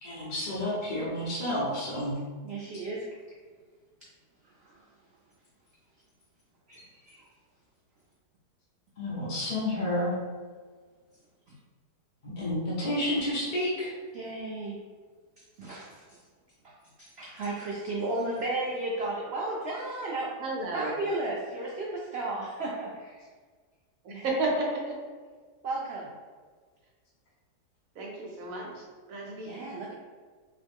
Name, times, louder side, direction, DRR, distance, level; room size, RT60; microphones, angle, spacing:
voice 1, 0.0-2.2 9.0-10.2 12.2-13.9, left 1 dB, 40° left, -8 dB, 0.8 m, -30 dB
voice 2, 2.4-3.1 4.6-4.8 6.7-7.2 14.1-14.8 15.6-16.2 16.6-20.3 20.7-23.2 24.1-24.3 25.6-26.1 29.4-29.9, right 2 dB, 80° right, -4 dB, 0.5 m, -34 dB
voice 3, 20.4-21.0 24.0-25.0 27.9-29.7, right 2 dB, 60° right, -2 dB, 1.1 m, -32 dB
3.1 x 3.0 x 3.5 m, 1.5 s
omnidirectional pair, 1.7 m